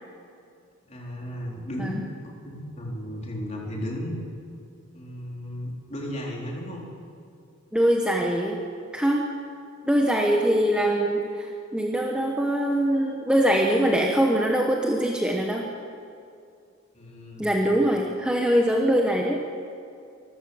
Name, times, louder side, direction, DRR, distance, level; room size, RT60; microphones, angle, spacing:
voice 1, 0.9-4.2 4.9-6.9 16.9-17.5, equal, 30° left, -2 dB, 4.1 m, -34 dB
voice 2, 7.7-8.6 8.9-9.2 9.9-15.7 17.4-19.4, equal, 5° right, -1 dB, 1.2 m, -23 dB
25.5 x 15.0 x 7.2 m, 2.4 s
head